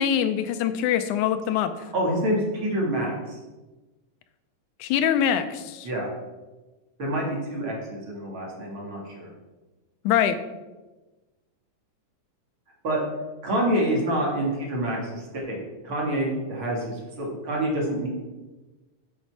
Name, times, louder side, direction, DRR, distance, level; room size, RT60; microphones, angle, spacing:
voice 1, 0.0-1.7 4.8-5.9 10.1-10.4, left 9 dB, 90° left, 10 dB, 2.1 m, -23 dB
voice 2, 1.9-3.4 5.8-6.1 7.0-9.3 12.8-13.0 13.4-18.1, right 1 dB, 45° right, -2 dB, 2.5 m, -27 dB
8.3 x 7.0 x 4.6 m, 1.2 s
omnidirectional pair, 3.3 m